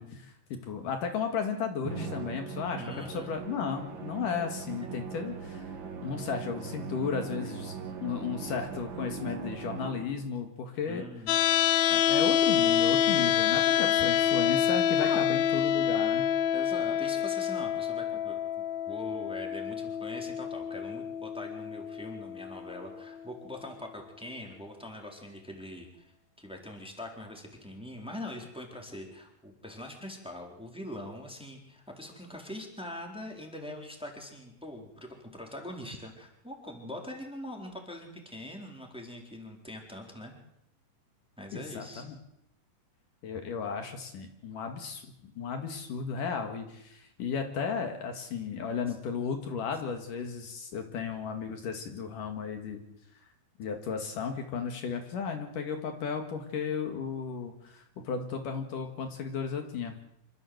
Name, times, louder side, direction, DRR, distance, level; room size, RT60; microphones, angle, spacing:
voice 1, 0.0-5.7 6.0-7.7 8.0-11.0 11.9-16.3 41.5-42.2 43.2-52.8 53.6-59.9, left 6 dB, 65° left, 5 dB, 3.4 m, -34 dB
Musical instrument, 1.8-10.4, right 6 dB, 45° right, 1.7 m, -40 dB
voice 2, 2.8-3.4 10.9-11.4 13.7-14.1 15.0-15.2 16.5-18.4 18.9-40.4 41.4-42.0, left 1 dB, ahead, 1 dB, 3.9 m, -43 dB
sound 1, 11.3-23.3, left 9 dB, 85° left, 2.9 m, -27 dB
26.5 x 15.0 x 8.0 m, 0.79 s
omnidirectional pair, 4.1 m